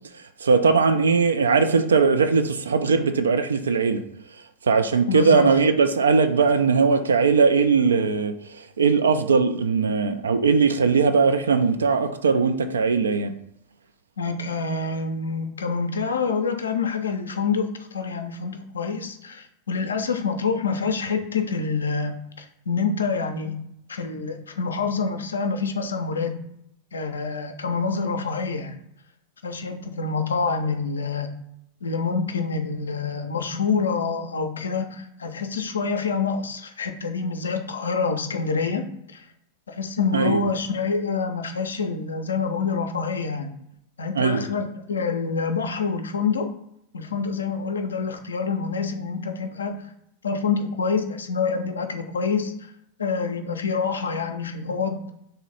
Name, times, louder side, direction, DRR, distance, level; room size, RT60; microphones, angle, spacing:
voice 1, 0.1-4.0 4.6-13.3 40.1-40.4 44.1-44.5, right 5 dB, 70° right, 8 dB, 0.3 m, -20 dB
voice 2, 5.1-5.5 14.2-23.6 23.9-26.4 26.9-28.8 29.4-31.3 31.8-38.9 39.1-39.3 39.7-43.5 44.0-46.5 46.9-49.9 50.2-52.7 53.0-55.0, left 5 dB, 70° left, 6 dB, 0.4 m, -27 dB
3.2 x 2.7 x 3.9 m, 0.78 s
figure-of-eight pair, 90°, 0 cm